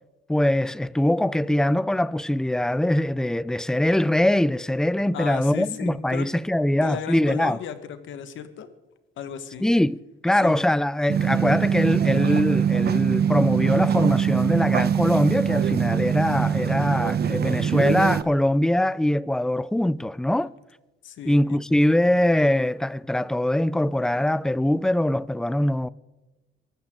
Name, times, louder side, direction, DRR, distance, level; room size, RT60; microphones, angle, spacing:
voice 1, 0.3-7.6 9.6-10.0 10.2-20.5 21.2-25.9, left 1 dB, 5° left, 0.4 m, -22 dB
voice 2, 5.1-6.3 6.8-8.7 9.2-9.6 10.4-10.6 21.0-21.6, left 9 dB, 75° left, 1.6 m, -34 dB
sound 1, 11.1-18.2, right 8 dB, 55° right, 0.9 m, -23 dB
23.5 x 13.0 x 3.8 m
cardioid pair, 90°, 20 cm